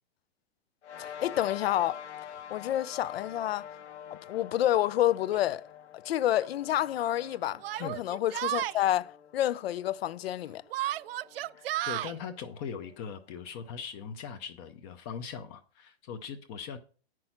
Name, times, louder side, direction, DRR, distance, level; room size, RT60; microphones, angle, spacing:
sound 1, 0.8-13.6, left 9 dB, 85° left, 1.2 m, -47 dB
voice 1, 1.0-2.0 2.5-3.7 4.3-5.6 6.1-10.6, left 12 dB, 65° left, 0.5 m, -29 dB
Yell, 5.3-5.4 6.4-6.5 7.6-8.8 10.7-12.1, right 14 dB, 60° right, 0.5 m, -33 dB
voice 2, 11.5-16.8, left 7 dB, 25° left, 0.6 m, -40 dB
8.9 x 6.1 x 5.8 m
hypercardioid pair, 155°, 33 cm